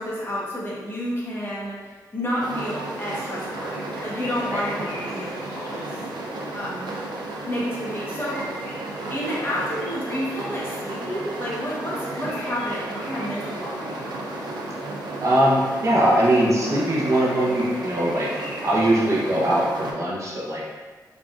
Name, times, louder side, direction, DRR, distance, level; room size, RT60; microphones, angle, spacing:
voice 1, 0.0-3.7 4.0-6.0 6.5-6.9 7.4-8.4 9.1-14.4, equal, 30° left, -7 dB, 1.2 m, -30 dB
sound 1, 2.4-19.9, right 2 dB, 90° right, 0.5 m, -33 dB
sound 2, 3.7-6.3 7.9-14.2 16.8-19.3, equal, 55° left, 1.4 m, -44 dB
voice 2, 15.2-18.3 18.6-20.6, right 1 dB, 45° right, -5 dB, 0.8 m, -21 dB
3.5 x 3.5 x 2.5 m, 1.4 s
cardioid pair, 85°, 7 cm